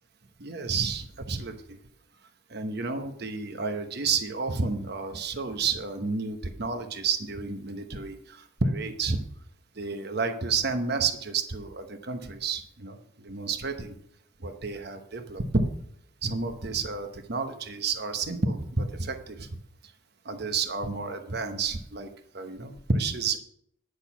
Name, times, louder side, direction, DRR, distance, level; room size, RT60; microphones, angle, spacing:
voice 1, 0.4-1.8 2.5-9.2 9.8-13.9 14.4-15.6 16.2-19.5 20.2-22.1 22.3-23.4, right 4 dB, 55° right, 7 dB, 1.1 m, -30 dB
10.0 x 6.6 x 6.0 m, 0.68 s
head